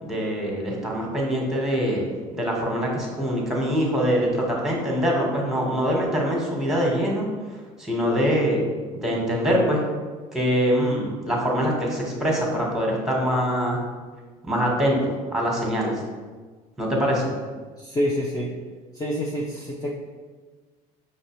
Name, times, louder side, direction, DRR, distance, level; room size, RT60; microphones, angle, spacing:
voice 1, 0.0-2.0 2.3-7.3 7.8-8.6 8.9-9.8 10.3-13.8 14.4-16.0 16.8-17.3, equal, 5° right, -2 dB, 1.4 m, -24 dB
voice 2, 17.8-18.5 18.9-19.9, equal, 20° left, -4 dB, 0.7 m, -27 dB
5.2 x 3.2 x 3.1 m, 1.4 s
supercardioid pair, 75°, 19 cm